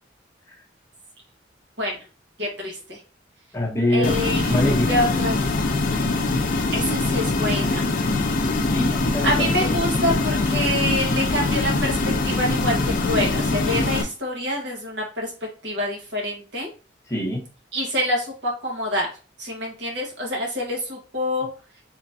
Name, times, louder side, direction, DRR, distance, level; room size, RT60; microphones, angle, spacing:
voice 1, 2.4-3.0 3.9-4.5 4.9-5.4 6.7-8.0 9.2-12.0 12.2-16.7 17.7-19.1 19.4-21.5, left 1 dB, 70° right, -1 dB, 1.4 m, -26 dB
voice 2, 3.5-4.2 4.5-5.0 8.7-9.8 17.1-17.5, left 1 dB, 15° left, -2 dB, 0.8 m, -24 dB
sound 1, 4.0-14.0, left 3 dB, 45° left, 0.5 m, -23 dB
3.5 x 3.1 x 2.7 m, 0.35 s
head